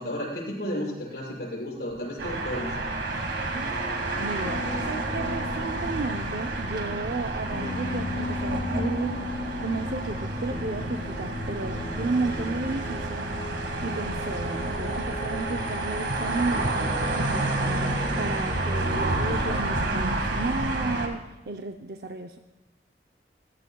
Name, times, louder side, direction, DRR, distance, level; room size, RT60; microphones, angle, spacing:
voice 1, 0.0-2.7, equal, 75° left, -3 dB, 6.8 m, -33 dB
sound 1, 2.2-21.1, right 2 dB, 85° right, 1.9 m, -30 dB
Indie Punk Instrumental, 3.7-19.6, left 2 dB, 35° left, 0.4 m, -37 dB
voice 2, 4.2-9.2 9.6-13.3 13.8-17.5 18.2-22.4, right 3 dB, 60° right, 4 dB, 0.6 m, -33 dB
29.0 x 15.0 x 2.3 m, 1.1 s
head